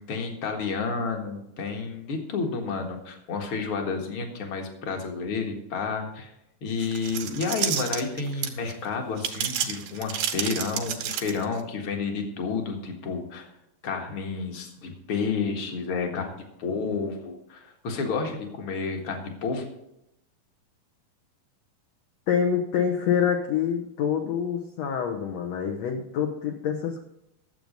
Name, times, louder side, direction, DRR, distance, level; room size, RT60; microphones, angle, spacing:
voice 1, 0.0-6.3 6.6-13.5 13.8-16.3 16.6-19.7, left 4 dB, 45° left, 3 dB, 1.9 m, -30 dB
sound 1, 6.8-8.7 9.2-11.6, right 9 dB, 85° right, 2.9 m, -30 dB
voice 2, 22.3-27.0, left 8 dB, 65° left, 1 dB, 1.7 m, -26 dB
12.5 x 7.9 x 5.3 m, 0.85 s
omnidirectional pair, 4.2 m